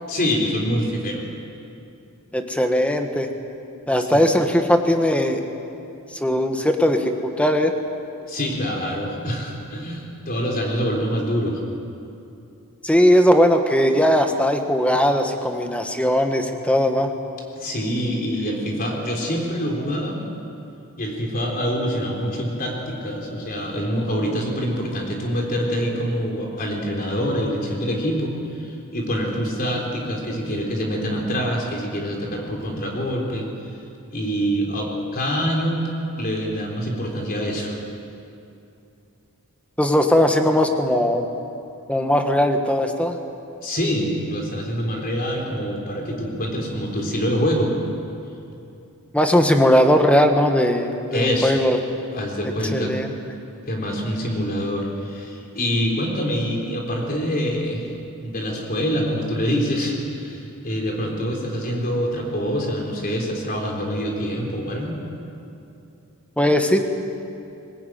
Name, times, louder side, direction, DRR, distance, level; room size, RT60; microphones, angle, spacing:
voice 1, 0.1-1.2 8.3-11.6 17.6-20.2 21.0-33.5 34.1-35.9 36.1-37.8 43.6-47.7 51.1-51.6 52.1-52.9 53.7-57.8 58.2-65.0, equal, 40° left, 0 dB, 3.9 m, -25 dB
voice 2, 2.3-3.3 3.9-5.4 6.1-7.7 12.8-17.1 39.8-41.3 41.9-43.2 49.1-51.8 52.7-53.1 66.4-66.8, equal, 5° left, 5 dB, 1.4 m, -19 dB
22.0 x 19.0 x 9.2 m, 2.7 s
head